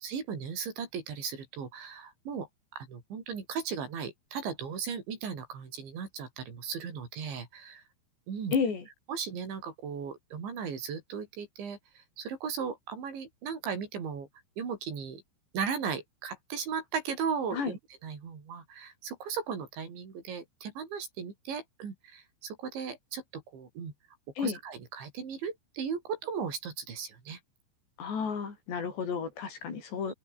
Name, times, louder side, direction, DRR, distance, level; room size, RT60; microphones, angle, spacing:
voice 1, 0.0-7.8 8.3-8.5 9.1-14.3 14.6-15.2 15.5-23.9 24.4-27.4 30.0-30.1, right 6 dB, 90° right, 7.5 m, -37 dB
voice 2, 8.5-8.9 17.5-17.7 24.4-24.6 28.0-30.1, left 6 dB, 70° left, 7.9 m, -32 dB
open air
omnidirectional pair, 5.1 m